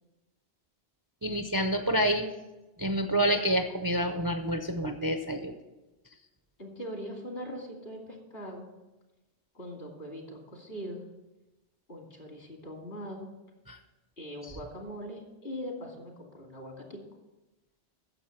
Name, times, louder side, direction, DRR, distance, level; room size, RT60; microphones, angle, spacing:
voice 1, 1.2-2.3 2.8-5.5 13.7-13.8, right 1 dB, 25° right, 6 dB, 0.5 m, -28 dB
voice 2, 6.6-8.7 9.5-11.1 11.9-13.3 14.2-17.0, equal, 60° left, 1 dB, 2.7 m, -41 dB
9.9 x 7.1 x 7.2 m, 1.1 s
omnidirectional pair, 1.1 m